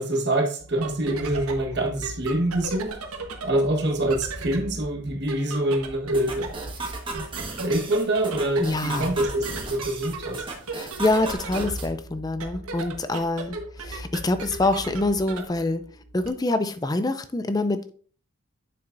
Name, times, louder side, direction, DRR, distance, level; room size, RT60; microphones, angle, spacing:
voice 1, 0.0-6.6 7.1-7.2 7.6-10.4, right 1 dB, 50° right, 1.4 m, -26 dB
sound 1, 0.6-16.3, right 2 dB, 80° right, 1.3 m, -37 dB
sound 2, 6.1-11.9, right 3 dB, 20° right, 1.3 m, -36 dB
voice 2, 8.6-9.1 10.7-15.8 16.1-17.9, left 2 dB, 15° left, 0.4 m, -25 dB
8.5 x 6.9 x 2.6 m
head